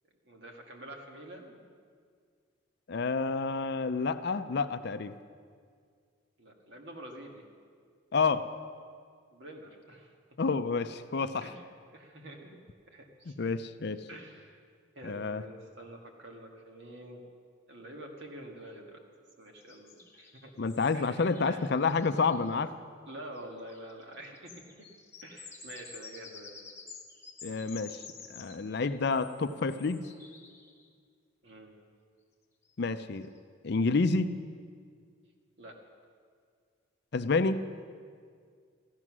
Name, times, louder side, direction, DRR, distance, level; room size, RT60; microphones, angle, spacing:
voice 1, 0.2-1.7 6.4-7.5 9.3-10.1 11.4-11.6 11.9-12.6 12.9-13.4 14.1-14.6 15.0-17.2 17.7-19.0 19.4-20.5 20.9-21.6 23.1-24.9 25.2-26.6 31.4-31.7 35.6-35.8, right 1 dB, 55° right, 1 dB, 1.9 m, -47 dB
voice 2, 2.9-5.1 8.1-8.5 10.4-11.5 13.4-14.0 15.0-15.4 20.6-22.7 27.4-28.0 28.3-30.0 32.8-33.3 33.6-34.3 37.1-37.6, left 4 dB, 50° left, 11 dB, 0.5 m, -29 dB
sound 1, 19.6-22.5 23.3-23.4 23.7-30.9 32.7-32.8 33.2-33.4, left 5 dB, 15° left, 1.2 m, -51 dB
14.5 x 12.5 x 6.1 m, 2.1 s
head